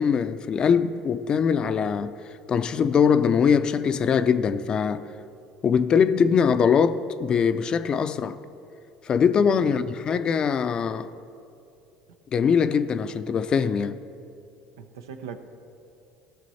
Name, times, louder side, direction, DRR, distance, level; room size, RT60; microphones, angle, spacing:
voice 1, 0.0-2.1 2.5-5.1 5.6-8.4 9.0-11.1 12.3-14.0, left 6 dB, 40° left, 0.5 m, -22 dB
voice 2, 14.8-15.4, right 7 dB, 85° right, 0.6 m, -39 dB
15.0 x 6.4 x 4.2 m
hypercardioid pair, 80°, 2 cm